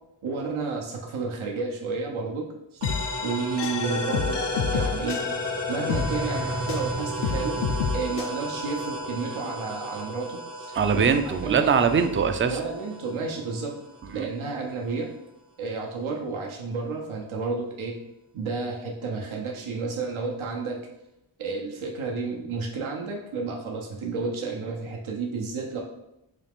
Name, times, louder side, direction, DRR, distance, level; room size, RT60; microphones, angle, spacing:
voice 1, 0.2-2.5 2.7-2.8 3.2-4.4 4.7-5.2 5.7-7.6 7.9-11.1 11.4-11.8 12.5-13.7 14.1-15.1 15.6-18.0 18.3-20.8 21.4-25.8, right 4 dB, 80° right, -1 dB, 0.7 m, -31 dB
sound 1, 2.8-6.9 7.2-8.3, left 7 dB, 60° left, 0.5 m, -29 dB
sound 2, 2.8-14.2, right 1 dB, 60° right, 1.0 m, -33 dB
voice 2, 10.7-12.6 14.2-14.3, right 6 dB, 30° right, 8 dB, 0.3 m, -22 dB
4.0 x 2.4 x 3.4 m, 0.84 s
cardioid pair, 45°, 48 cm